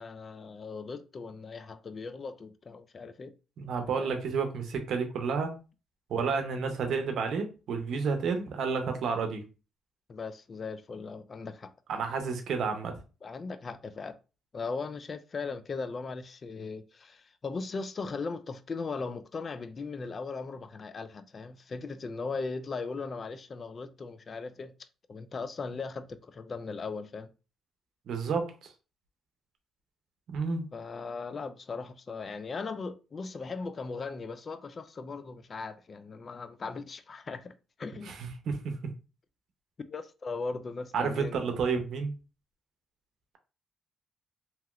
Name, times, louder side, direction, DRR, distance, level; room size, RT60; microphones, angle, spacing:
voice 1, 0.0-3.3 4.0-4.1 10.1-11.7 13.2-14.2 14.5-24.7 25.1-27.3 30.7-37.5 37.8-38.1 39.9-41.4, left 4 dB, 40° left, 0.3 m, -38 dB
voice 2, 3.6-5.5 6.1-9.4 11.9-12.9 28.1-28.7 30.3-30.6 38.1-38.7 40.9-42.1, right 5 dB, 70° right, 0.7 m, -30 dB
2.9 x 2.9 x 2.3 m
cardioid pair, 90°, 0 cm